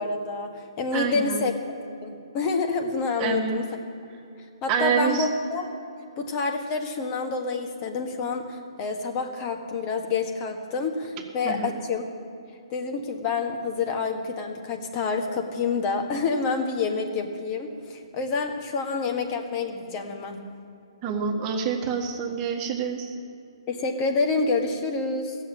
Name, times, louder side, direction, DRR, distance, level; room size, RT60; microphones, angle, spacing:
voice 1, 0.0-3.7 4.6-5.7 6.2-12.0 12.7-20.4 23.7-25.4, left 4 dB, 30° left, 4 dB, 1.6 m, -28 dB
voice 2, 0.9-1.4 3.2-3.6 4.7-5.3 11.4-11.7 21.0-23.1, right 6 dB, 25° right, 2 dB, 1.7 m, -27 dB
16.0 x 7.2 x 9.7 m, 2.5 s
figure-of-eight pair, 130°, 3 cm